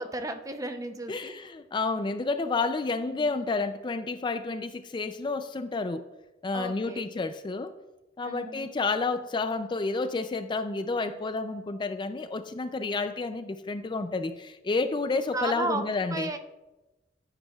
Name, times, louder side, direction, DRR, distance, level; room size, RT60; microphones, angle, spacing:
voice 1, 0.0-1.3 3.2-3.3 6.5-7.0 8.2-8.7 15.3-15.8 16.1-16.4, right 2 dB, 20° right, 7 dB, 0.6 m, -34 dB
voice 2, 1.1-6.0 6.4-7.7 8.2-16.3, left 3 dB, 25° left, 10 dB, 0.4 m, -30 dB
11.5 x 9.8 x 2.3 m, 1.0 s
head